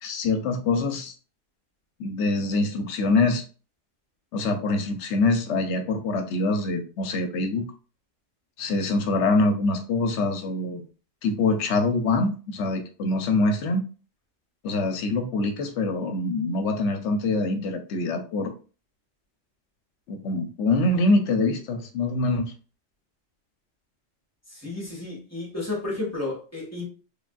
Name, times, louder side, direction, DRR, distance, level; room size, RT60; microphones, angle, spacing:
voice 1, 0.0-1.1 2.0-3.4 4.3-7.7 8.6-10.8 11.2-13.8 14.6-18.5 20.1-22.5, left 2 dB, 75° left, 0.9 m, -24 dB
voice 2, 24.5-26.8, left 2 dB, 15° left, 1.0 m, -32 dB
3.3 x 2.5 x 2.2 m
omnidirectional pair, 1.3 m